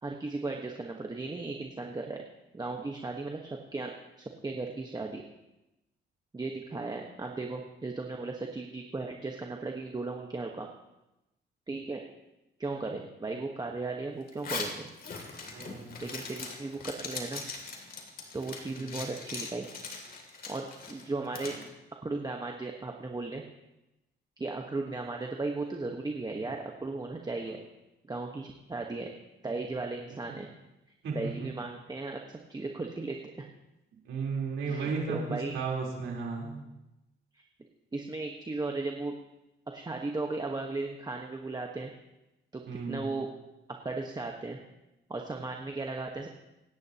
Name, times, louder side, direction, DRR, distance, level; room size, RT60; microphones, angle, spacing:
voice 1, 0.0-2.2 2.5-3.9 4.2-5.2 6.3-10.7 11.7-12.0 12.6-14.9 16.0-17.4 18.3-19.7 20.5-21.5 22.0-23.4 24.4-27.6 28.1-29.1 29.4-30.5 31.1-32.2 32.5-33.5 34.6-35.5 37.9-39.1 39.7-41.9 42.5-43.3 43.8-44.6 45.1-46.3, right 3 dB, 20° right, 2 dB, 1.3 m, -36 dB
Zipper (clothing), 14.3-21.6, left 4 dB, 50° left, 2.8 m, -40 dB
voice 2, 15.5-16.0 18.7-18.9 31.0-31.3 34.1-36.6 42.7-43.0, right 4 dB, 85° right, -3 dB, 4.0 m, -34 dB
25.5 x 10.5 x 3.0 m, 0.96 s
cardioid pair, 90°, 20 cm